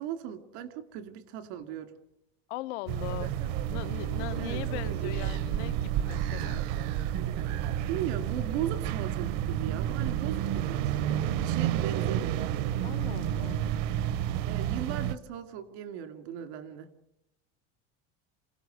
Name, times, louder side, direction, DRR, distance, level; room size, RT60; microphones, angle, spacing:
voice 1, 0.0-1.9 4.4-5.2 7.9-11.0 11.3-12.5 14.4-16.9, right 10 dB, 75° right, 2.5 m, -37 dB
voice 2, 2.5-3.4 3.7-6.6 12.8-13.6, left 19 dB, 90° left, 0.8 m, -39 dB
sound 1, 2.9-15.2, right 11 dB, 55° right, 0.9 m, -30 dB
27.5 x 17.5 x 8.0 m
cardioid pair, 170°, 34 cm